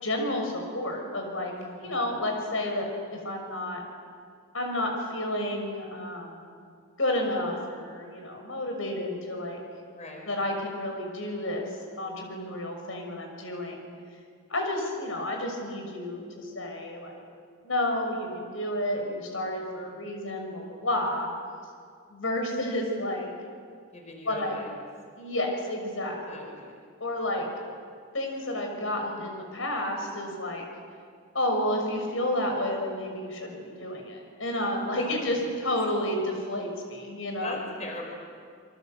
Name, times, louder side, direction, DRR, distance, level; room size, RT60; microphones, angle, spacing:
voice 1, 0.0-1.5 1.8-3.8 4.5-6.6 7.0-9.6 10.3-13.9 14.5-17.2 17.6-21.3 22.1-23.3 24.2-24.6 25.2-26.5 27.0-27.5 28.1-30.6 31.3-37.7, left 1 dB, 85° left, 2 dB, 6.1 m, -31 dB
voice 2, 1.6-2.0 10.0-10.3 19.7-20.0 23.9-24.7 26.3-26.7 35.0-35.3 37.3-38.1, left 2 dB, 35° left, 1 dB, 5.0 m, -40 dB
29.0 x 24.0 x 8.0 m, 2.1 s
head